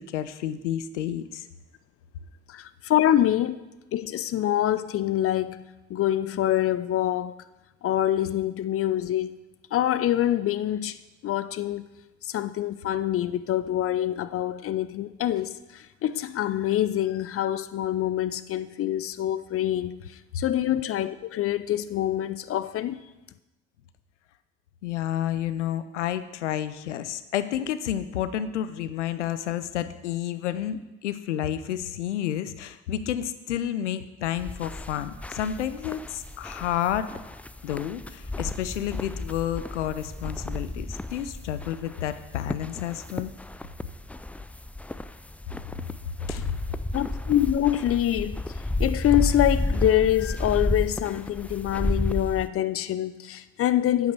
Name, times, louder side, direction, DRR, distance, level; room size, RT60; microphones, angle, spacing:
voice 1, 0.0-1.4 24.8-37.1 37.6-43.3 46.3-46.5, left 11 dB, 80° left, 0.7 m, -30 dB
voice 2, 2.5-3.6 3.9-5.6 5.9-7.3 7.8-9.4 9.7-11.0 11.2-11.9 12.2-23.0 46.9-48.4 48.8-54.1, left 12 dB, 40° left, 0.7 m, -25 dB
sound 1, 34.4-52.5, left 2 dB, 5° left, 0.4 m, -32 dB
9.1 x 8.2 x 6.7 m
figure-of-eight pair, 60°, 35 cm